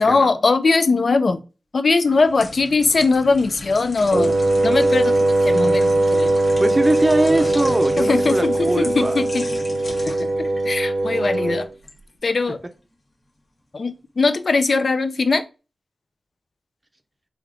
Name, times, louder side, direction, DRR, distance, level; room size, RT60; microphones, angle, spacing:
voice 1, 0.0-1.4 1.7-4.3 4.6-6.3 8.0-9.5 10.0-10.3 10.6-11.7 12.2-12.6 13.7-15.4, left 3 dB, 65° left, 0.5 m, -20 dB
sound 1, 2.0-12.0 12.4-12.6, left 1 dB, 45° left, 1.3 m, -37 dB
Wind instrument woodwind instrument, 4.1-11.7, right 2 dB, 90° right, 0.5 m, -20 dB
voice 2, 6.6-9.2, right 1 dB, 25° right, 0.5 m, -21 dB
3.4 x 2.8 x 3.7 m
wide cardioid pair, 65°, 0 cm